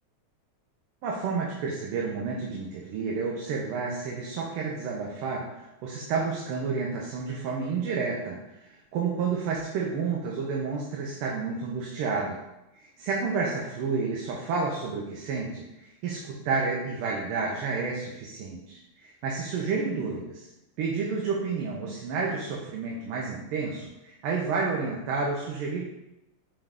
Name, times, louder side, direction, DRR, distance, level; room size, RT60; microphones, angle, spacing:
voice 1, 1.0-8.4 8.7-12.4 12.8-15.6 16.0-20.5 20.8-25.8, right 4 dB, 85° right, -2 dB, 1.5 m, -30 dB
5.3 x 2.3 x 3.5 m, 0.93 s
omnidirectional pair, 2.3 m